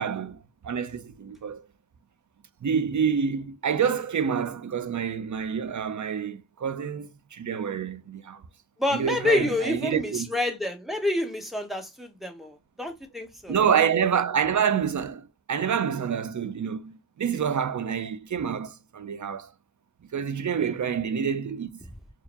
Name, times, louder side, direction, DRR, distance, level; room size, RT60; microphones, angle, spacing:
voice 1, 0.0-1.6 2.6-8.4 8.9-10.3 13.5-19.5 20.1-21.8, right 7 dB, 55° right, 0.5 m, -27 dB
voice 2, 8.8-13.5, left 2 dB, ahead, 1.1 m, -28 dB
4.6 x 2.0 x 3.4 m
wide cardioid pair, 60°, 35 cm